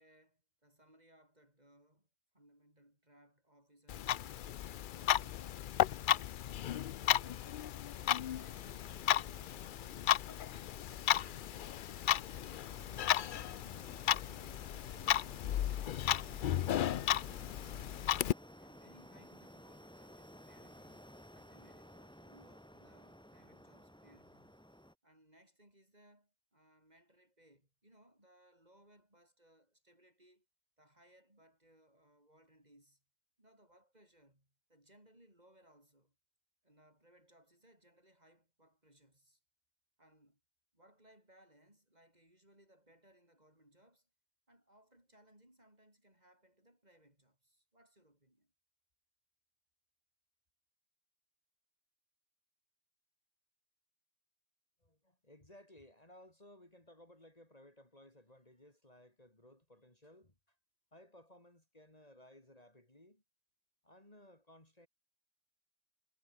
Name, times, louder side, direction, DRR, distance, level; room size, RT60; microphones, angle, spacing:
voice 1, 0.0-2.1 2.3-6.7 7.2-12.0 12.3-16.0 16.4-18.0 18.6-21.1 21.3-24.6 25.0-30.5 30.8-33.0 33.4-36.2 36.6-39.4 40.0-40.4 40.7-44.1 44.5-48.5, right 1 dB, 35° right, 7.5 m, -67 dB
Clock, 3.9-18.3, left 11 dB, 60° left, 0.6 m, -34 dB
sound 1, 8.5-24.9, equal, 5° left, 3.2 m, -57 dB
voice 2, 54.8-60.6 60.9-63.2 63.8-64.9, left 1 dB, 35° left, 4.0 m, -60 dB
omnidirectional pair, 1.2 m